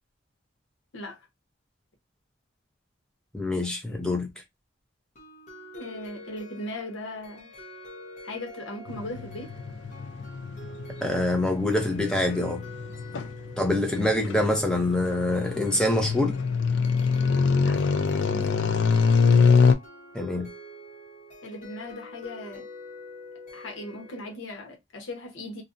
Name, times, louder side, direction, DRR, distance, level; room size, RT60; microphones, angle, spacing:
voice 1, 0.9-1.3 5.7-7.5 8.2-9.5 17.6-17.8 18.1-18.7 21.4-22.7 23.5-25.6, left 1 dB, 80° left, 0.8 m, -38 dB
voice 2, 3.3-4.3 11.0-12.6 13.6-16.4 20.1-20.5, left 1 dB, 5° left, 0.6 m, -25 dB
sound 1, 5.2-24.3, left 1 dB, 40° left, 0.7 m, -46 dB
sound 2, 8.9-19.7, left 5 dB, 65° left, 0.3 m, -24 dB
2.5 x 2.0 x 2.5 m
head